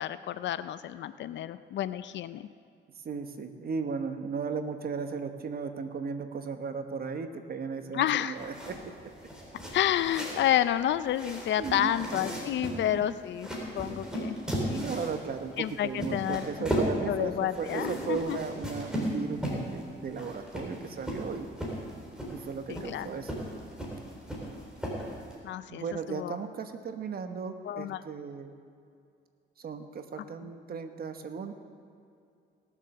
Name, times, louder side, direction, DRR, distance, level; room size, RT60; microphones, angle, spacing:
voice 1, 0.0-2.5 7.9-8.4 9.7-13.5 13.7-14.4 14.6-14.8 15.6-16.7 17.1-18.4 22.7-23.2 25.4-26.4 27.6-28.0 30.2-30.3, left 11 dB, 65° left, 13 dB, 0.5 m, -30 dB
voice 2, 3.0-8.8 11.6-11.9 12.6-13.2 14.6-21.5 22.3-23.4 24.8-24.9 25.7-28.5 29.6-31.5, right 5 dB, 50° right, 7 dB, 1.2 m, -36 dB
sound 1, 8.3-25.3, equal, 5° right, 3.9 m, -36 dB
18.0 x 7.4 x 6.6 m, 2.4 s
cardioid pair, 90°, 20 cm